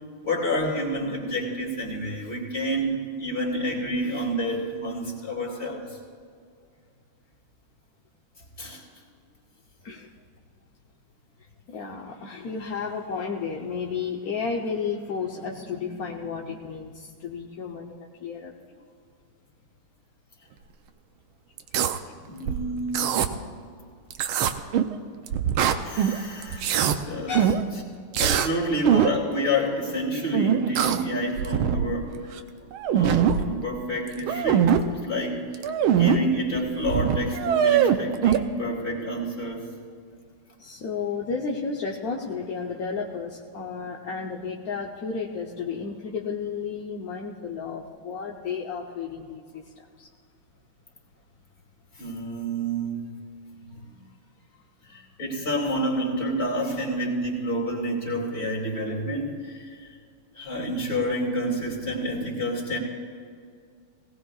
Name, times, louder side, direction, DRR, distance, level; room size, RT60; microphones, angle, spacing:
voice 1, 0.2-5.8 8.6-8.8 22.2-23.1 25.8-27.3 28.2-32.2 32.9-34.8 35.0-35.4 35.8-39.6 52.0-53.0 54.9-59.6 60.4-62.8, equal, 30° left, -2 dB, 2.9 m, -28 dB
voice 2, 5.2-5.6 9.8-10.1 11.7-18.5 22.0-22.3 23.8-23.9 27.3-27.6 37.9-38.0 40.6-50.1 53.7-54.1 54.5-54.6 54.9-55.0, left 5 dB, 55° left, -2 dB, 1.1 m, -33 dB
sound 1, 21.6-22.0 22.5-23.3 24.1-25.0 25.3-26.2 26.4-27.0 27.3-27.6 28.1-28.5 28.8-29.2 30.3-31.0 31.4-32.0 32.4-32.5 32.7-33.4 34.1-34.8 35.5-36.2 36.6-36.7 36.8-38.4, right 9 dB, 75° right, 1.5 m, -22 dB
19.0 x 17.5 x 2.4 m, 2.2 s
omnidirectional pair, 2.4 m